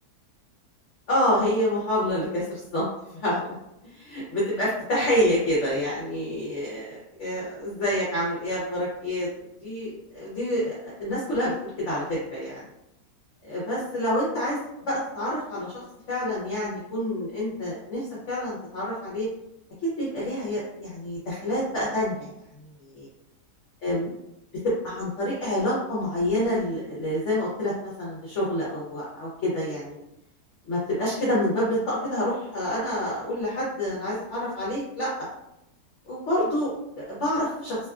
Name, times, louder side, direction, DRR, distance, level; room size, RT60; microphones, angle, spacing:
voice 1, 1.1-2.9 3.1-3.5 3.8-9.3 9.6-12.6 13.4-19.3 19.8-22.3 22.8-23.1 23.8-24.1 24.6-30.0 30.7-35.1 36.1-37.9, left 1 dB, 60° left, -7 dB, 0.8 m, -27 dB
2.8 x 2.3 x 2.3 m, 0.86 s
omnidirectional pair, 1.7 m